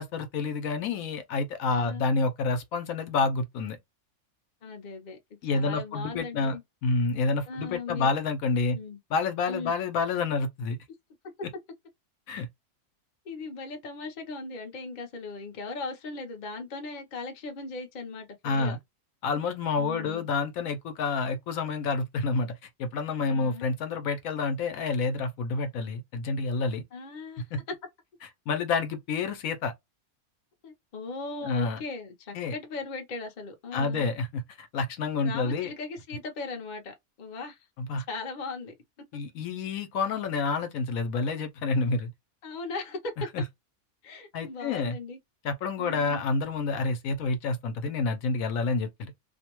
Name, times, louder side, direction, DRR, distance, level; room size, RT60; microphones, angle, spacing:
voice 1, 0.0-3.8 5.4-6.6 6.8-8.8 9.1-10.8 12.3-12.5 18.4-18.8 19.2-22.5 22.8-26.8 27.5-27.6 28.5-29.7 31.4-31.8 32.3-32.5 33.7-35.7 37.8-38.1 39.1-42.1 43.2-43.4 44.3-45.0 45.4-49.1, left 4 dB, 75° left, 0.9 m, -28 dB
voice 2, 1.7-2.0 4.6-5.2 5.5-6.6 7.5-8.1 8.7-9.0 9.5-9.7 13.2-18.8 19.8-20.3 23.3-23.7 26.9-27.4 30.6-34.1 35.2-37.7 38.1-38.7 42.4-43.1 44.0-45.2 45.8-46.2, left 3 dB, 45° left, 0.6 m, -38 dB
2.6 x 2.1 x 2.9 m
omnidirectional pair, 1.5 m